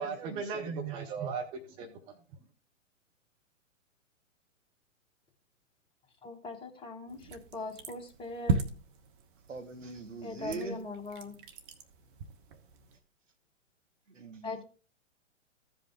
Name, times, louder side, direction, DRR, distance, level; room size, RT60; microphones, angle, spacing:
voice 1, 0.0-2.2, right 5 dB, 15° right, 0.5 m, -37 dB
voice 2, 6.2-8.6 10.2-11.4 14.4-14.6, left 3 dB, 15° left, 1.2 m, -41 dB
sound 1, 7.1-13.0, right 4 dB, 40° right, 1.2 m, -38 dB
voice 3, 9.5-10.8 14.1-14.6, right 3 dB, 70° right, 1.6 m, -41 dB
15.0 x 5.2 x 3.5 m
figure-of-eight pair, 115°, 39 cm